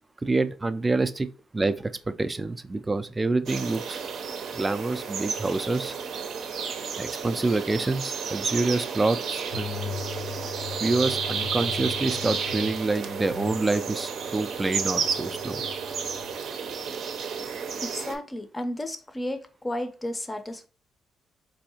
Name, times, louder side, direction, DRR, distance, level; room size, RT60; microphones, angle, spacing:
voice 1, 0.2-1.3 1.5-4.0 4.5-5.9 7.0-9.9 10.8-15.7, right 3 dB, 20° right, 0.4 m, -27 dB
sound 1, 3.5-18.2, right 6 dB, 65° right, 0.6 m, -32 dB
sound 2, 9.5-16.3, left 9 dB, 70° left, 0.6 m, -40 dB
voice 2, 17.8-20.7, left 1 dB, 20° left, 0.6 m, -33 dB
4.1 x 2.7 x 2.8 m
cardioid pair, 90°, 0 cm